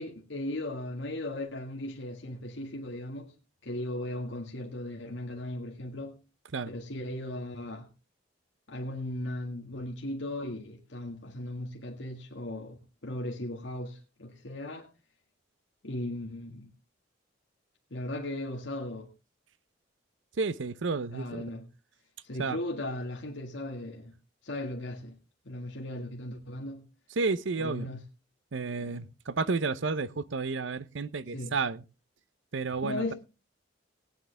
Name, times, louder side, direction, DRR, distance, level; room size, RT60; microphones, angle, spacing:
voice 1, 0.0-3.3 3.6-6.2 6.7-7.9 8.7-14.9 15.8-16.7 17.9-19.1 21.1-21.7 22.2-24.1 24.4-25.2 25.5-26.8 27.6-28.0 28.8-29.0 31.3-31.5 32.8-33.1, left 1 dB, 70° left, 1.9 m, -37 dB
voice 2, 20.4-21.4 22.4-22.6 27.2-27.9 28.5-31.8 32.5-33.1, right 4 dB, 70° right, 0.7 m, -31 dB
18.0 x 9.7 x 3.4 m
head